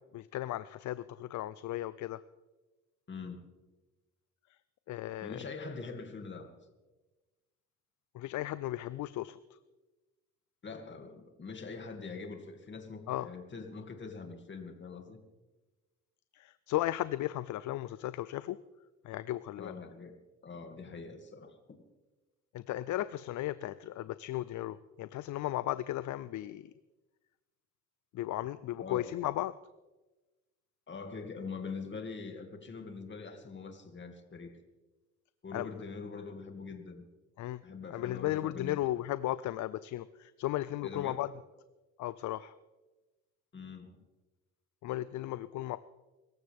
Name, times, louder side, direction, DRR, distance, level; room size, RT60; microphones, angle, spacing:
voice 1, 0.1-2.2 4.9-5.4 8.1-9.4 13.1-13.3 16.3-18.6 19.0-19.8 22.5-26.7 28.1-29.5 35.5-35.7 37.4-37.6 37.9-41.3 42.0-42.5 44.8-45.8, left 14 dB, 70° left, 15 dB, 0.5 m, -35 dB
voice 2, 3.1-3.4 5.2-6.6 10.6-15.2 19.6-20.1 20.4-21.6 28.8-29.1 30.9-34.6 35.4-37.0 37.6-38.8 40.8-41.2 43.5-44.0, left 4 dB, 40° left, 4 dB, 2.5 m, -43 dB
24.5 x 14.5 x 3.6 m, 1.2 s
cardioid pair, 90°, 30 cm